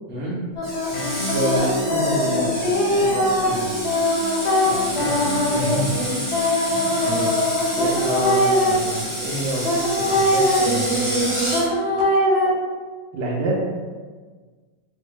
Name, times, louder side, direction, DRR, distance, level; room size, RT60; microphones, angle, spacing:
sound 1, 0.6-8.7 9.6-12.5, left 1 dB, 65° left, 0.6 m, -21 dB
Screech, 0.6-11.7, equal, 10° right, 0.7 m, -30 dB
sound 2, 0.9-9.0, left 1 dB, 90° left, 1.4 m, -33 dB
voice 1, 1.3-2.6 4.6-5.7 13.1-13.6, right 1 dB, 75° right, -2 dB, 1.2 m, -26 dB
voice 2, 2.8-3.7 5.6-5.9 6.6-11.6, right 1 dB, 45° right, -7 dB, 0.8 m, -30 dB
3.6 x 2.0 x 3.1 m, 1.4 s
omnidirectional pair, 2.0 m